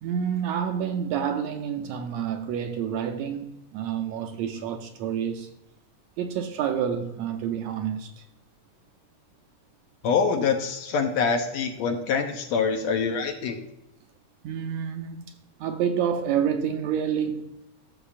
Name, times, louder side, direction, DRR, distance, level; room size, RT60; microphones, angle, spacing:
voice 1, 0.0-5.5 6.2-8.3 14.4-15.2 15.6-17.5, right 8 dB, 80° right, 1.7 m, -28 dB
voice 2, 10.0-13.6, left 5 dB, 75° left, 1.8 m, -25 dB
13.0 x 6.8 x 2.4 m
omnidirectional pair, 3.5 m